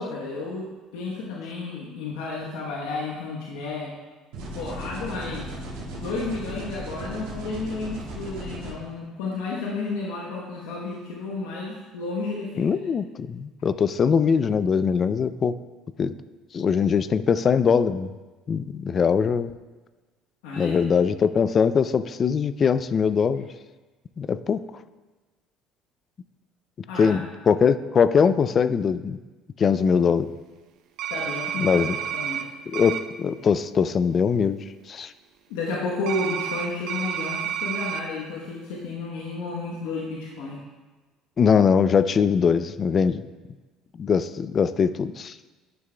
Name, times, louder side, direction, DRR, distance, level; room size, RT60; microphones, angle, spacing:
voice 1, 0.0-3.9 4.5-5.5 6.0-12.9 20.4-20.8 26.9-27.2 31.1-31.8 32.1-32.5 35.5-40.6, left 3 dB, 90° left, -3 dB, 1.0 m, -32 dB
sound 1, 4.3-8.7, right 1 dB, 85° right, 1.9 m, -36 dB
voice 2, 12.6-15.6 16.0-16.1 16.5-18.1 18.5-19.5 20.6-23.5 24.2-24.6 27.0-29.2 29.6-30.3 31.6-32.0 32.7-35.1 41.4-43.2 44.0-45.3, left 6 dB, 40° left, 14 dB, 0.3 m, -22 dB
sound 2, 31.0-32.4 32.7-33.0 36.1-38.0, right 9 dB, 70° right, 0.5 m, -30 dB
11.0 x 5.9 x 2.2 m, 1.3 s
supercardioid pair, 90°, 0 cm